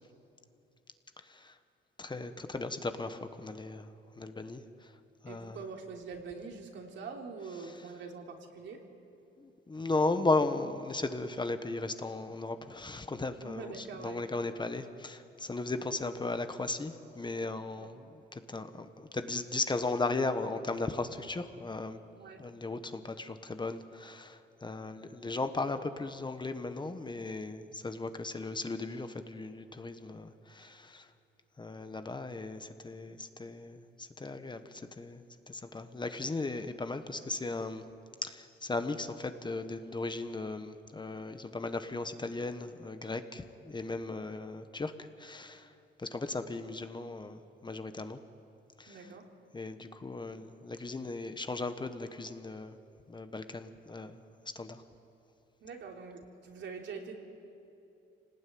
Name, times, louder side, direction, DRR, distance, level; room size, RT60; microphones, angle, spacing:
voice 1, 1.2-1.5 2.0-4.9 5.2-5.6 7.6-7.7 9.4-22.0 22.4-31.1 31.6-37.8 38.2-45.7 46.0-48.2 48.8-49.1 49.5-52.7 53.1-54.2 54.5-54.8, left 3 dB, 20° left, 9 dB, 1.4 m, -36 dB
voice 2, 5.2-8.8 13.4-14.2 17.8-18.0 22.2-22.4 48.9-49.3 55.6-57.1, right 5 dB, 70° right, 2 dB, 3.3 m, -44 dB
26.5 x 18.5 x 9.5 m, 2.7 s
cardioid pair, 90°, 20 cm